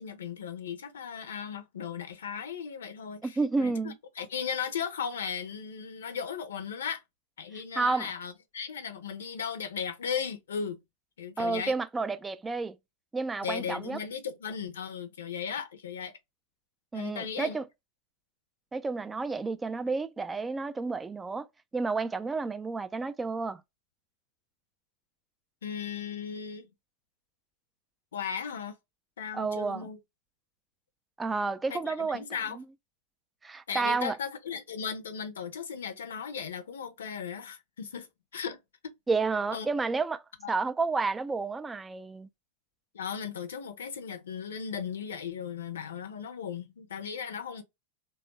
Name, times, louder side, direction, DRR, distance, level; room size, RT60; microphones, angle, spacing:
voice 1, 0.0-7.0 7.4-10.8 11.2-11.7 13.4-16.1 16.9-17.6 25.6-26.7 28.1-28.8 29.2-30.0 31.7-32.6 33.7-38.6 39.5-39.7 40.4-40.5 42.9-47.6, left 7 dB, 65° left, 0.6 m, -36 dB
voice 2, 3.2-4.0 7.8-8.1 11.4-12.8 13.1-14.0 16.9-17.7 18.7-21.5 21.7-23.6 29.3-29.9 31.2-32.2 32.6-32.7 33.4-34.2 39.1-42.3, right 4 dB, 10° right, 0.4 m, -30 dB
3.4 x 2.3 x 2.9 m
figure-of-eight pair, 90°, 0 cm